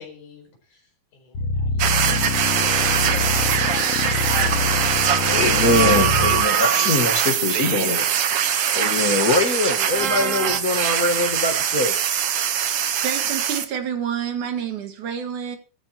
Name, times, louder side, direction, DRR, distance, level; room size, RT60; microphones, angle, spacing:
voice 1, 0.0-2.5, left 6 dB, 85° left, 5 dB, 6.1 m, -48 dB
sound 1, 1.3-6.4, left 4 dB, 60° left, 2.9 m, -25 dB
sound 2, 1.8-13.6, right 9 dB, 60° right, 2.0 m, -22 dB
voice 2, 5.3-8.1 8.7-11.9, left 2 dB, 35° left, 1 dB, 1.6 m, -22 dB
voice 3, 13.0-15.6, right 8 dB, 85° right, 6 dB, 3.4 m, -28 dB
19.0 x 14.0 x 3.0 m, 0.34 s
omnidirectional pair, 3.4 m